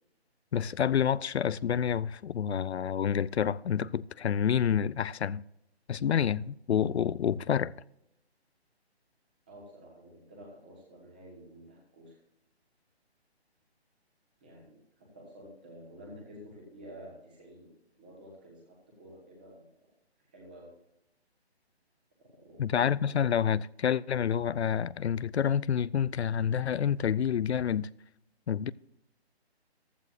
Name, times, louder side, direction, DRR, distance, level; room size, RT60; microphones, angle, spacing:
voice 1, 0.5-5.4 5.9-7.7 22.6-27.9 28.5-28.7, left 8 dB, 75° left, 0.5 m, -28 dB
voice 2, 9.5-12.2 14.4-19.7 20.3-20.8 22.2-23.2, equal, 10° right, 1.2 m, -51 dB
15.0 x 12.5 x 2.5 m
hypercardioid pair, 175°, 33 cm